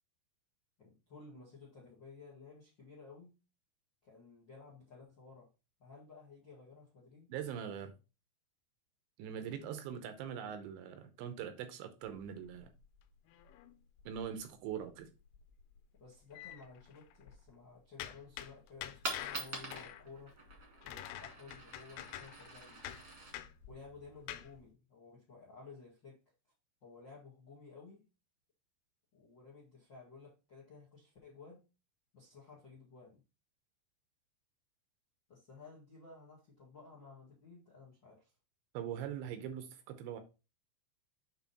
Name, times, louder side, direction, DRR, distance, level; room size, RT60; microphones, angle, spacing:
voice 1, 0.8-3.4 4.0-5.5 5.8-7.3 15.9-20.3 20.8-22.9 23.7-26.1 26.8-28.0 29.1-31.6 32.1-33.2 35.3-38.3, left 4 dB, 65° left, 1.1 m, -55 dB
voice 2, 7.3-7.9 9.2-12.7 14.1-15.1 38.7-40.2, right 8 dB, 80° right, 2.9 m, -42 dB
sound 1, 12.0-14.4 14.7-15.0 15.3-17.5 18.0-24.6, left 12 dB, 90° left, 3.2 m, -48 dB
Coin (dropping), 18.7-24.7, right 3 dB, 40° right, 1.5 m, -47 dB
8.5 x 3.8 x 4.2 m
omnidirectional pair, 5.6 m